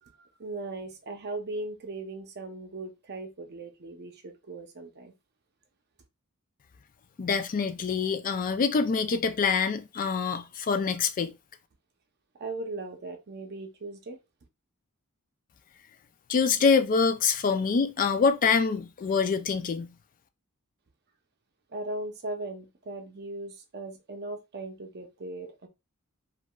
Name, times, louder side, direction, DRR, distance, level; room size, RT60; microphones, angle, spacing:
voice 1, 0.0-5.1 12.4-14.2 21.7-25.7, right 2 dB, 45° right, 0.6 m, -38 dB
voice 2, 7.2-11.3 16.3-19.9, left 5 dB, 40° left, 0.3 m, -25 dB
3.0 x 2.5 x 2.2 m
head